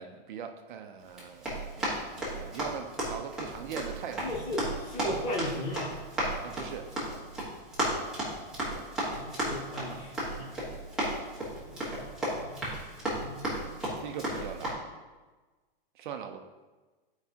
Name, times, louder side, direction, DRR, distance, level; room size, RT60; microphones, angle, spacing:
voice 1, 0.0-1.5 1.8-4.3 6.4-6.9 14.0-14.8 16.0-16.4, right 8 dB, 55° right, 5 dB, 0.6 m, -40 dB
Run, 1.1-14.7, right 1 dB, ahead, 1.3 m, -35 dB
voice 2, 4.2-5.9 9.1-10.5 11.7-13.6, equal, 45° left, -4 dB, 2.2 m, -37 dB
10.5 x 4.8 x 2.8 m, 1.3 s
supercardioid pair, 175°, 29 cm